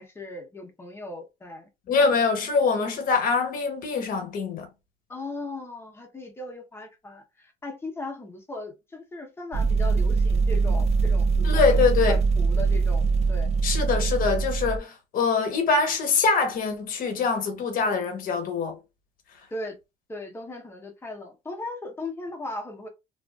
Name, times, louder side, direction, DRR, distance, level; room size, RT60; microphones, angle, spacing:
voice 1, 0.0-1.7 5.1-11.7 12.1-13.5 19.5-19.8 20.1-22.9, left 2 dB, 15° left, 0.7 m, -37 dB
voice 2, 1.9-4.7 11.4-12.2 13.6-18.8, left 5 dB, 55° left, 0.9 m, -24 dB
sound 1, 9.5-14.8, right 4 dB, 40° right, 0.4 m, -22 dB
2.4 x 2.3 x 2.2 m
cardioid pair, 110°, 17 cm